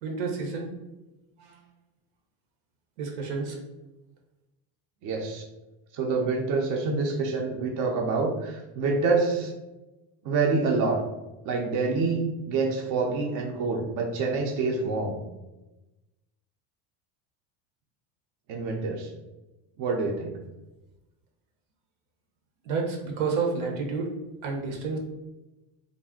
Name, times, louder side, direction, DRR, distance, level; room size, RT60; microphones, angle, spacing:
voice 1, 0.0-0.7 1.4-1.6 3.0-3.6 22.6-24.1 24.4-25.0, right 4 dB, 90° right, 1 dB, 0.8 m, -30 dB
voice 2, 5.0-5.4 5.9-9.5 10.2-11.0 11.4-15.2 18.5-19.1 19.8-20.4, right 4 dB, 50° right, 0 dB, 0.5 m, -27 dB
2.4 x 2.1 x 3.5 m, 1.0 s
cardioid pair, 140°, 41 cm